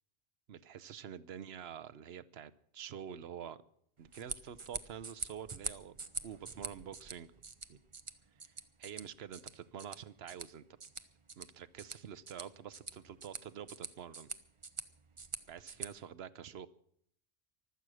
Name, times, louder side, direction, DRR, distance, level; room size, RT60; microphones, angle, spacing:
voice 1, 0.5-3.6 4.0-7.3 7.7-7.8 8.5-8.6 8.8-10.6 11.4-14.3 15.5-16.7, right 8 dB, 75° right, 15 dB, 1.0 m, -47 dB
sound 1, 4.0-15.9, right 4 dB, 35° right, 0.7 m, -46 dB
24.0 x 8.2 x 6.3 m, 0.67 s
omnidirectional pair, 1.1 m